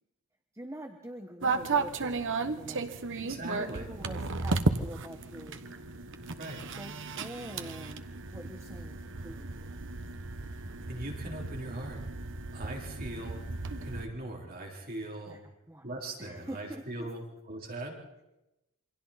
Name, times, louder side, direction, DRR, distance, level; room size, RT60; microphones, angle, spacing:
voice 1, 0.5-2.9 3.2-5.7 6.7-9.7 15.3-15.9 16.2-17.1, right 1 dB, 15° right, 5 dB, 1.3 m, -45 dB
sound 1, 1.4-14.1, right 3 dB, 60° right, 1.2 m, -34 dB
voice 2, 3.3-3.9 6.4-6.6 10.9-12.0 12.5-13.4 13.8-15.4 15.8-17.2 17.5-18.0, right 1 dB, 45° right, 0 dB, 3.9 m, -40 dB
28.0 x 25.0 x 4.2 m, 0.94 s
head